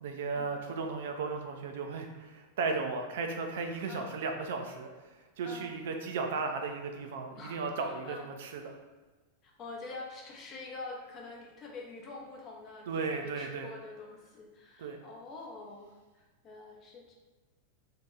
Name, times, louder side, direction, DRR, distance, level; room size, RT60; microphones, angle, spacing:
voice 1, 0.0-4.9 5.4-8.6 12.9-13.7 14.8-15.0, right 4 dB, 55° right, 4 dB, 0.4 m, -35 dB
voice 2, 7.4-8.3 9.4-17.1, left 3 dB, 30° left, 0 dB, 0.7 m, -46 dB
2.9 x 2.8 x 3.7 m, 1.3 s
figure-of-eight pair, 90°, 0 cm